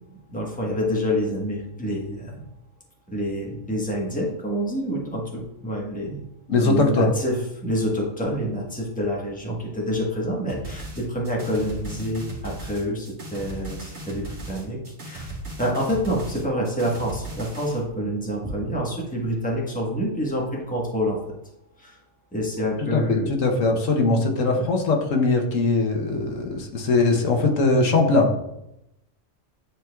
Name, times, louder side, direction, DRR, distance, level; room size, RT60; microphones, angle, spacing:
voice 1, 0.1-2.4 3.1-6.2 6.6-21.3 21.8-22.0 22.3-23.3 24.5-24.7, equal, 5° left, -3 dB, 1.3 m, -27 dB
voice 2, 6.5-7.1 22.9-28.3, left 3 dB, 80° left, 3 dB, 1.3 m, -21 dB
sound 1, 10.5-17.8, right 1 dB, 60° right, 1.8 m, -37 dB
10.0 x 4.4 x 2.3 m, 0.84 s
omnidirectional pair, 1.3 m